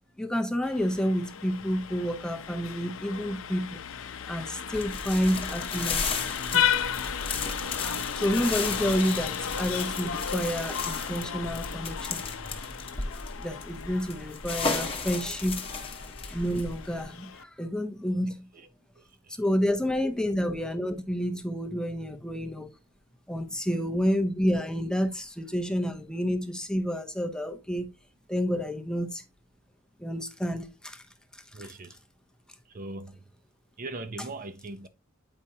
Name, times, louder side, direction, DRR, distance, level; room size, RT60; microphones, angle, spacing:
voice 1, 0.2-3.8 4.3-6.3 6.5-6.7 8.2-12.2 13.4-15.6 16.3-18.5 19.4-22.7 23.3-27.9 28.3-29.2 30.0-31.0 31.3-31.7, equal, 5° left, 0.7 m, -29 dB
Vehicle horn car horn honking, 0.6-17.4, left 8 dB, 75° left, 0.6 m, -34 dB
sound 1, 4.7-17.0, left 4 dB, 25° left, 1.1 m, -35 dB
voice 2, 19.0-19.4 31.5-32.0 32.7-33.2 33.8-34.9, right 2 dB, 40° right, 0.6 m, -40 dB
8.7 x 4.9 x 2.7 m
head